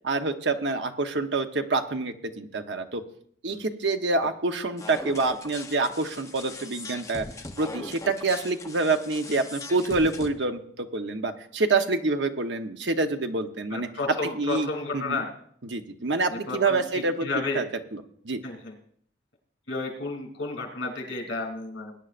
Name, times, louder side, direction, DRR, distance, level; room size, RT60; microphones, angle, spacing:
voice 1, 0.0-3.0 3.4-7.3 7.6-13.9 14.4-15.2 15.6-17.3 17.5-17.6 17.9-18.4, right 3 dB, 75° right, 6 dB, 1.0 m, -27 dB
sound 1, 4.8-10.3, left 2 dB, 15° left, 0.8 m, -40 dB
voice 2, 13.7-15.3 16.3-17.6 18.4-18.7 19.7-22.0, left 3 dB, 80° left, 3 dB, 3.0 m, -32 dB
20.5 x 10.0 x 2.6 m, 0.62 s
head